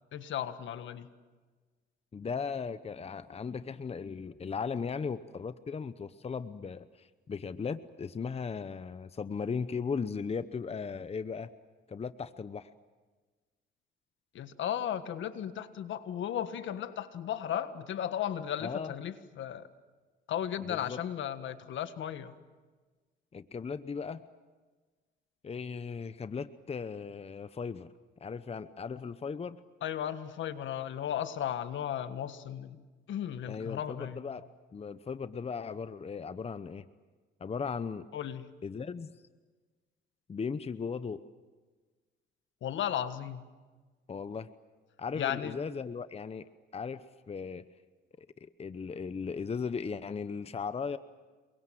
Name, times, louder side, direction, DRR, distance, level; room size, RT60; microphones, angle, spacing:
voice 1, 0.1-1.1 14.3-19.7 20.3-22.3 29.8-32.8 33.1-34.2 38.1-38.5 42.6-43.4 45.1-45.6, left 10 dB, 70° left, 11 dB, 1.6 m, -35 dB
voice 2, 2.1-11.5 11.9-12.7 18.6-18.9 20.6-21.0 23.3-24.2 25.4-27.9 28.2-29.6 33.5-34.4 34.7-36.8 37.4-38.1 38.6-39.1 40.3-41.2 44.1-44.5 45.0-47.6 48.2-51.0, left 5 dB, 30° left, 13 dB, 0.9 m, -37 dB
28.5 x 23.5 x 7.7 m, 1.4 s
cardioid pair, 90°, 20 cm